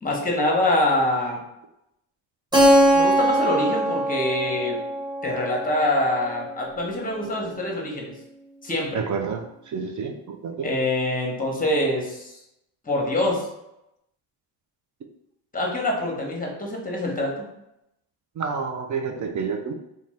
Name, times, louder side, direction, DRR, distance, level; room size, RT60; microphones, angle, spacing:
voice 1, 0.0-1.4 2.9-4.8 5.2-8.1 8.6-9.0 10.6-12.3 12.8-13.5 15.5-17.4, left 1 dB, 15° left, 0 dB, 0.9 m, -25 dB
Keyboard (musical), 2.5-7.1, right 1 dB, 10° right, 0.8 m, -22 dB
voice 2, 8.9-10.7 18.4-19.7, right 5 dB, 40° right, 3 dB, 0.4 m, -29 dB
2.5 x 2.3 x 3.3 m, 0.85 s
supercardioid pair, 60°, 50 cm